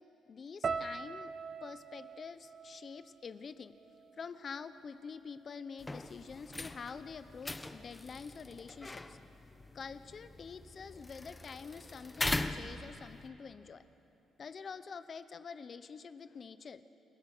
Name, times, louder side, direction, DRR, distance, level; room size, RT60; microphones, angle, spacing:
voice 1, 0.0-1.3 1.6-3.7 4.1-9.2 9.7-13.8 14.4-16.8, left 5 dB, 45° left, 12 dB, 0.8 m, -47 dB
sound 1, 0.6-4.8 5.1-5.9 6.5-6.7, right 5 dB, 45° right, 0.7 m, -43 dB
sound 2, 5.8-13.3, left 2 dB, 15° left, 0.9 m, -41 dB
28.0 x 15.0 x 6.2 m, 2.9 s
cardioid pair, 90°, 0 cm